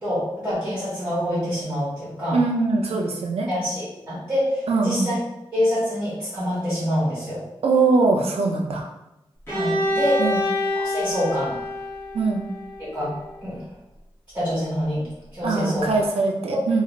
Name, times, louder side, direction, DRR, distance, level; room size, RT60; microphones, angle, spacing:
voice 1, 0.0-2.4 3.5-5.1 5.5-7.4 9.5-10.2 10.7-11.6 12.8-13.1 13.4-13.6 14.3-15.0 15.3-16.0 16.5-16.6, equal, 20° right, -12 dB, 1.2 m, -26 dB
voice 2, 2.3-3.5 4.7-5.1 7.6-8.9 10.2-10.4 12.1-12.4 15.4-16.8, right 3 dB, 85° right, 1 dB, 0.4 m, -22 dB
Bowed string instrument, 9.5-13.3, left 1 dB, 25° left, 1.0 m, -27 dB
2.4 x 2.3 x 3.0 m, 0.91 s
wide cardioid pair, 150°, 10 cm